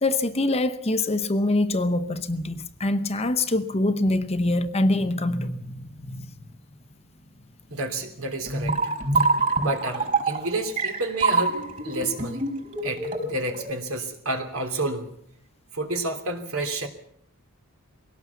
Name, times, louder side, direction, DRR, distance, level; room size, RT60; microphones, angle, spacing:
voice 1, 0.0-6.5, left 2 dB, 30° left, 0.9 m, -25 dB
voice 2, 7.7-9.2 9.6-12.5 12.8-15.1 15.7-16.9, right 2 dB, 70° right, 3.1 m, -30 dB
sound 1, 8.5-13.7, right 3 dB, 35° right, 5.4 m, -25 dB
21.5 x 18.0 x 7.1 m
head